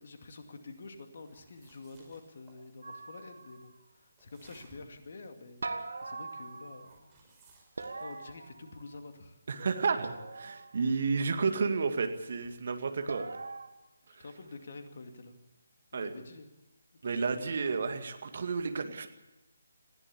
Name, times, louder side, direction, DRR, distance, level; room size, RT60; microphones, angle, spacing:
voice 1, 0.0-7.1 8.0-9.4 14.2-15.4 15.9-16.5 17.0-17.4, left 3 dB, 45° left, 6 dB, 2.3 m, -48 dB
sound 1, 1.2-2.6 4.2-5.0 6.8-8.5 10.1-10.3, right 3 dB, 15° right, 5.1 m, -61 dB
sound 2, 2.8-3.7 5.6-7.0 7.8-9.1 10.0-10.9 13.1-13.7, right 3 dB, 60° right, 1.7 m, -42 dB
voice 2, 9.5-13.3 14.1-14.2 15.9-16.1 17.0-19.1, right 4 dB, 45° right, 7 dB, 2.1 m, -31 dB
20.5 x 15.0 x 8.6 m, 0.99 s
figure-of-eight pair, 145°, 0 cm